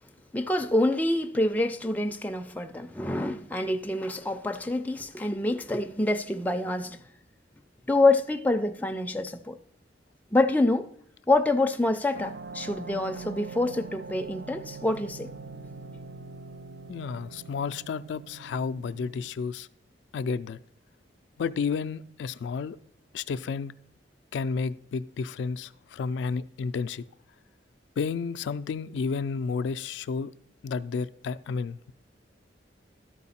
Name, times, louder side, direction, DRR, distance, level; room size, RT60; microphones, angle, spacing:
voice 1, 0.3-7.0 7.9-9.6 10.3-10.9 11.3-15.3, left 2 dB, 10° left, 0.4 m, -26 dB
sound 1, 12.1-19.3, right 4 dB, 65° right, 0.4 m, -43 dB
voice 2, 16.9-19.7 20.1-20.6 21.4-22.8 23.1-23.7 24.3-27.0 28.0-30.3 30.6-31.9, left 5 dB, 80° left, 0.3 m, -31 dB
12.5 x 4.5 x 4.2 m
head